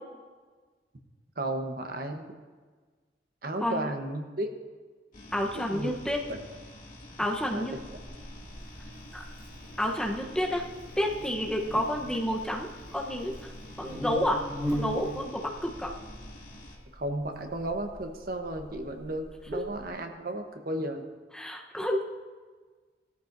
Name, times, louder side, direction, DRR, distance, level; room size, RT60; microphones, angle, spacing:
voice 1, 1.4-2.3 3.4-4.5 5.5-5.9 6.3-6.4 7.5-7.6 11.7-11.8 16.9-21.1, right 1 dB, 55° right, 5 dB, 1.1 m, -34 dB
sound 1, 5.1-16.8, left 1 dB, 45° left, 2.4 m, -48 dB
voice 2, 5.3-6.2 7.2-7.7 9.1-9.2 9.8-10.6 11.0-13.3 13.8-14.4 14.7-15.9 21.3-22.0, equal, 5° left, 0 dB, 0.9 m, -30 dB
Buzz, 7.7-19.9, equal, 15° right, 2.1 m, -41 dB
18.5 x 13.5 x 2.7 m, 1.4 s
head